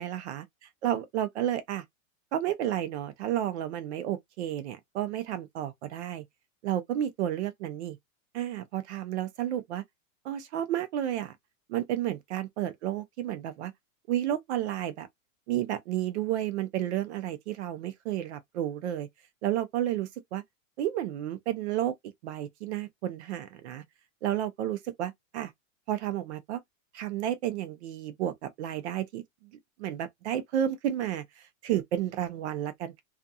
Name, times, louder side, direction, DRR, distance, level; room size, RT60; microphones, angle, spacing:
voice 1, 0.0-0.5 0.8-1.8 2.3-6.2 6.6-8.0 8.3-9.8 10.2-11.4 11.7-13.7 14.1-15.1 15.5-19.1 19.4-20.4 20.8-22.0 22.2-23.8 24.2-25.5 25.9-26.6 26.9-29.2 29.8-32.9, right 11 dB, 55° right, 0.5 m, -31 dB
2.5 x 2.4 x 2.6 m
supercardioid pair, 160°, 41 cm